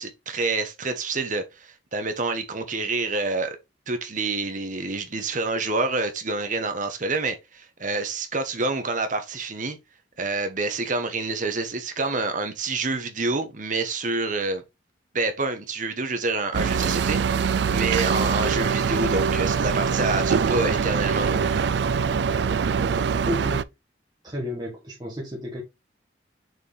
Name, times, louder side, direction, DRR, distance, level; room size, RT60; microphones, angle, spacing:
voice 1, 0.0-3.6 3.9-9.8 10.2-14.6 15.1-21.7, right 3 dB, 45° right, 1.1 m, -27 dB
sound 1, 16.5-23.6, right 6 dB, 65° right, 0.4 m, -23 dB
voice 2, 23.2-23.6 24.2-25.6, left 1 dB, 20° right, 1.5 m, -31 dB
6.3 x 4.6 x 3.3 m
head